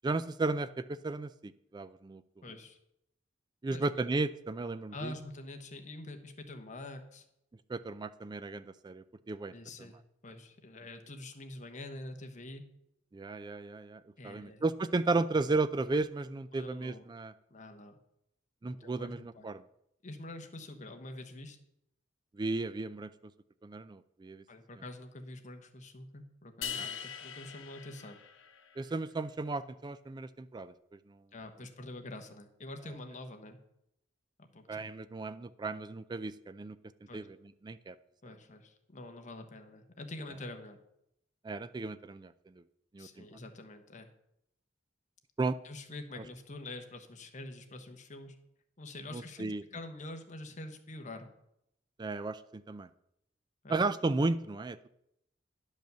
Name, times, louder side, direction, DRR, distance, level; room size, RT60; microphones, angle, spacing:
voice 1, 0.0-2.2 3.6-5.1 7.7-9.5 13.1-17.3 18.6-19.6 22.3-23.1 23.6-24.4 26.8-26.9 28.8-31.2 34.7-36.8 37.1-37.4 37.6-38.0 41.4-42.6 42.9-43.3 45.4-45.6 49.1-49.6 52.0-52.9 53.7-54.9, right 3 dB, 25° right, 14 dB, 0.3 m, -34 dB
voice 2, 2.4-2.8 3.7-3.9 4.9-7.2 9.5-12.6 14.2-14.6 16.5-17.0 17.5-18.0 18.6-19.5 20.0-21.6 24.5-28.2 31.3-33.6 34.4-34.9 37.1-37.3 38.2-40.8 43.0-44.1 45.6-48.4 48.8-51.3 53.6-53.8, left 2 dB, 40° left, 6 dB, 1.1 m, -46 dB
sound 1, 26.6-28.9, left 8 dB, 90° left, 1.0 m, -42 dB
10.5 x 5.2 x 6.8 m, 0.80 s
head